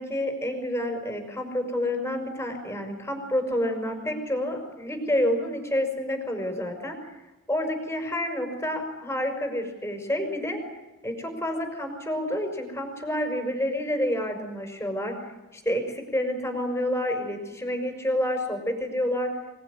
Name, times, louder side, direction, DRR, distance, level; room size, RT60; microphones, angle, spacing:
voice 1, 0.0-7.0 7.5-10.6 11.0-15.1 15.5-19.3, left 1 dB, 10° left, 1 dB, 5.3 m, -28 dB
25.5 x 20.0 x 9.8 m, 1.0 s
head